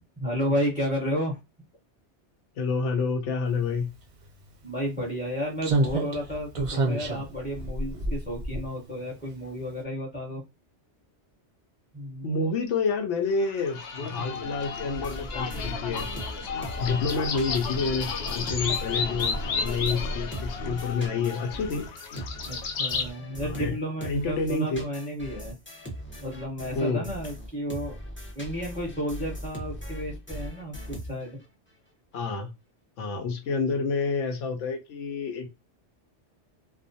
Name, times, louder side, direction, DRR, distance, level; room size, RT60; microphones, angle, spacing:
voice 1, 0.2-1.4 4.6-10.4 11.9-12.4 22.5-25.6 26.2-27.9 28.3-31.4, equal, 5° right, -1 dB, 0.8 m, -32 dB
voice 2, 2.6-3.9 12.2-16.1 16.8-21.8 23.4-23.8 24.0-24.8 26.8-27.1 32.1-32.5 33.0-35.5, left 4 dB, 85° left, 4 dB, 0.9 m, -28 dB
Slam, 4.2-4.3 5.6-9.1 9.4-9.6, right 2 dB, 45° right, 0.4 m, -29 dB
sound 1, 13.4-23.1, left 4 dB, 65° left, 0.8 m, -32 dB
sound 2, 14.9-20.1 20.3-31.5, equal, 15° left, 0.4 m, -40 dB
2.3 x 2.1 x 2.6 m, 0.24 s
omnidirectional pair, 1.2 m